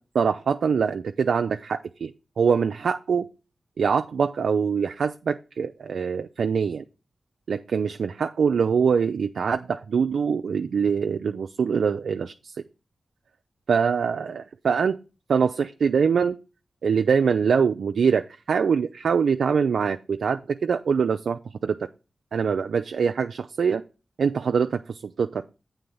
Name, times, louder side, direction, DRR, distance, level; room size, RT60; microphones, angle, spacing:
voice 1, 0.1-2.1 2.4-3.3 3.8-6.8 7.5-12.6 13.7-15.0 15.3-16.4 16.8-21.8 22.3-23.8 24.2-25.4, right 6 dB, 85° right, 8 dB, 0.4 m, -24 dB
8.0 x 3.9 x 6.8 m, 0.31 s
cardioid pair, 50°, 0 cm